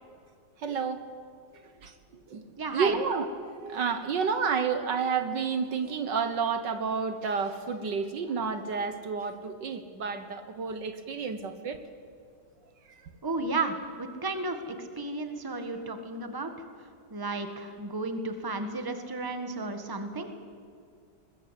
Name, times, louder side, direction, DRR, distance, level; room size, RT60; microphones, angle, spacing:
voice 1, 0.6-1.1 1.8-2.4 2.7-11.8 12.9-13.0, right 5 dB, 65° right, 9 dB, 1.9 m, -30 dB
voice 2, 2.6-3.0 13.2-16.5 17.1-20.3, right 3 dB, 10° right, 7 dB, 1.6 m, -33 dB
22.5 x 20.5 x 8.3 m, 2.3 s
omnidirectional pair, 2.1 m